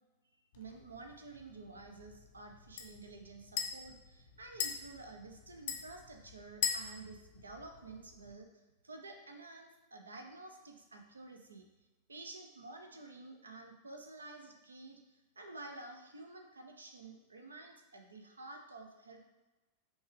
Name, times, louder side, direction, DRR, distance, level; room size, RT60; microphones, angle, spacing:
sound 1, 0.5-8.3, left 7 dB, 55° left, 0.5 m, -43 dB
voice 1, 0.6-8.5 8.8-11.6 12.1-19.2, right 3 dB, 75° right, 4 dB, 0.5 m, -51 dB
5.2 x 2.3 x 3.3 m, 1.1 s
figure-of-eight pair, 90°, 0 cm